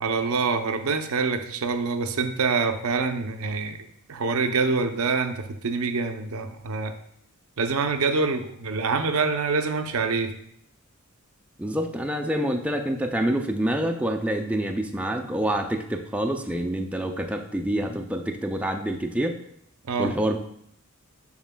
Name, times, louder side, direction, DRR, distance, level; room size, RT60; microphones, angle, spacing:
voice 1, 0.0-3.8 4.1-6.9 7.6-10.3 19.8-20.1, right 4 dB, 85° right, 7 dB, 0.6 m, -25 dB
voice 2, 11.6-19.4 20.0-20.4, right 1 dB, 5° right, 3 dB, 0.4 m, -27 dB
7.1 x 6.1 x 2.2 m, 0.71 s
head